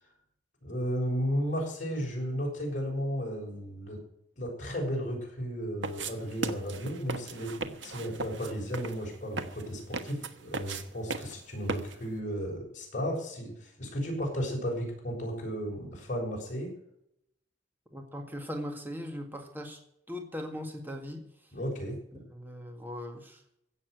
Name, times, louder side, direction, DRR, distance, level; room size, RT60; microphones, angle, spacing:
voice 1, 0.6-4.0 4.4-16.7 21.5-22.0, equal, 45° left, -1 dB, 6.5 m, -34 dB
sound 1, 5.8-12.2, right 3 dB, 80° right, 1.3 m, -38 dB
voice 2, 17.9-19.8 20.1-21.3 22.1-23.4, equal, 10° right, 3 dB, 1.9 m, -39 dB
16.5 x 7.2 x 8.0 m, 0.74 s
head